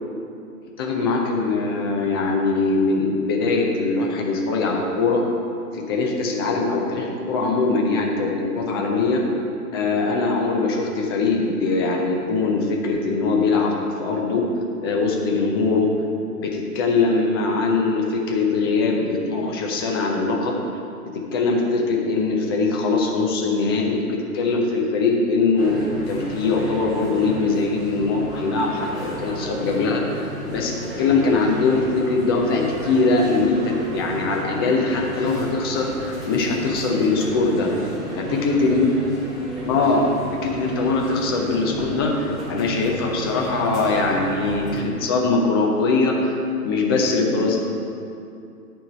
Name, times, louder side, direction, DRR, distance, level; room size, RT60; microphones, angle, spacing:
voice 1, 0.8-5.2 5.7-9.2 9.7-13.7 14.0-14.4 14.8-15.9 16.4-20.5 21.1-25.8 26.1-30.0 30.5-37.7 38.2-39.2 39.6-40.1 40.4-46.4 46.6-47.6, left 3 dB, 15° left, 0 dB, 0.5 m, -22 dB
sound 1, 25.6-44.8, right 2 dB, ahead, 2.1 m, -34 dB
12.0 x 4.5 x 5.4 m, 2.5 s
figure-of-eight pair, 130°, 46 cm